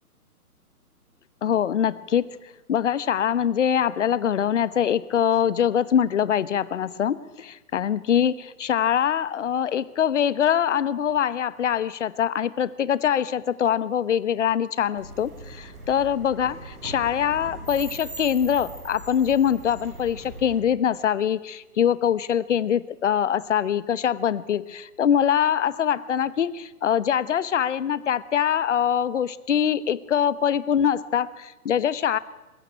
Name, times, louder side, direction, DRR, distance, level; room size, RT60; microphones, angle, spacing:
voice 1, 1.4-2.3 2.7-32.2, left 9 dB, 50° left, 18 dB, 1.0 m, -23 dB
sound 1, 15.0-20.6, right 2 dB, 75° right, 6.8 m, -40 dB
21.5 x 16.0 x 10.0 m, 1.1 s
figure-of-eight pair, 135°, 45 cm